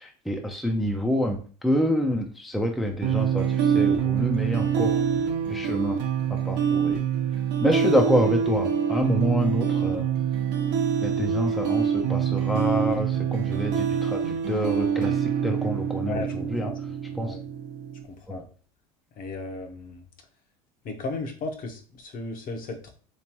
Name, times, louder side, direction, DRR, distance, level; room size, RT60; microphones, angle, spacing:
voice 1, 0.0-5.0 5.5-6.0 6.3-7.0 7.6-10.1 11.0-16.7 17.1-17.4 18.3-18.4, equal, ahead, 2 dB, 0.5 m, -27 dB
sound 1, 3.0-18.0, right 8 dB, 60° right, 0.8 m, -25 dB
voice 2, 16.1-16.7 17.1-17.4 18.1-18.5 19.2-20.0 20.8-22.9, left 3 dB, 45° left, 4 dB, 0.9 m, -35 dB
3.3 x 3.0 x 3.0 m, 0.40 s
hypercardioid pair, 85°, 21 cm